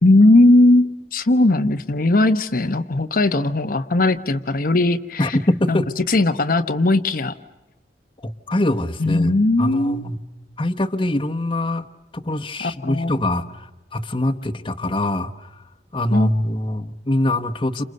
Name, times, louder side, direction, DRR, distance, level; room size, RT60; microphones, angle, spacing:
voice 1, 0.0-5.4 5.7-5.8 6.1-7.3 9.0-10.0 12.6-13.1 16.1-16.3, left 2 dB, 50° left, 7 dB, 0.9 m, -18 dB
voice 2, 5.2-5.9 8.2-10.2 10.6-11.9 12.1-15.5 15.9-17.8, left 1 dB, 30° left, 6 dB, 1.1 m, -23 dB
29.5 x 27.5 x 6.6 m, 1.0 s
head